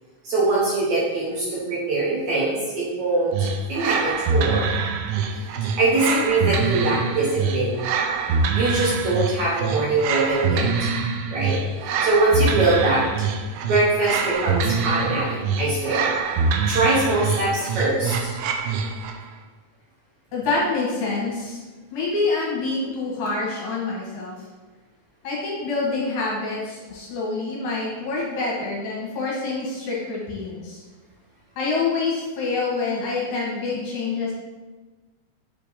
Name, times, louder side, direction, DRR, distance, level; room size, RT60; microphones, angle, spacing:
voice 1, 0.2-3.3 3.7-4.7 5.8-7.9 8.5-10.9 11.3-13.1 13.6-16.1 16.7-18.3, right 2 dB, 65° right, -6 dB, 2.0 m, -23 dB
sound 1, 3.3-19.3, right 4 dB, 80° right, 2.3 m, -25 dB
voice 2, 20.3-21.6 21.9-24.4 25.2-30.8 31.6-34.3, left 3 dB, 70° left, -4 dB, 2.6 m, -26 dB
7.2 x 4.3 x 3.5 m, 1.3 s
omnidirectional pair, 4.3 m